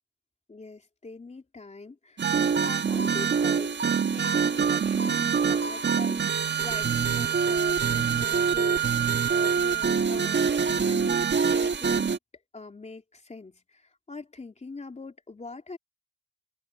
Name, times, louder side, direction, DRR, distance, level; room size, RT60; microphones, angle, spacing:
voice 1, 0.5-3.8 4.1-12.1 12.5-13.6 14.1-15.8, left 3 dB, 20° left, 3.6 m, -43 dB
sound 1, 2.2-12.2, right 6 dB, 35° right, 1.6 m, -25 dB
cardioid pair, 90°, 30 cm